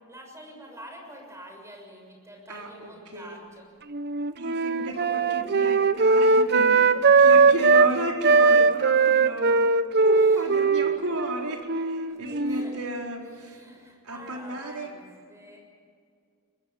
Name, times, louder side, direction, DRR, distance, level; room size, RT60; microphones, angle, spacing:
voice 1, 0.1-3.7 7.1-7.7 10.1-10.4 10.6-10.8 12.2-12.7 13.3-15.6, equal, 15° right, 1 dB, 6.5 m, -47 dB
voice 2, 2.5-3.4 4.3-13.6 14.0-14.9, right 1 dB, 85° right, 1 dB, 4.4 m, -33 dB
Wind instrument woodwind instrument, 3.9-7.9 8.2-12.7, right 4 dB, 50° right, 0.9 m, -20 dB
23.0 x 22.5 x 8.6 m, 2.2 s
head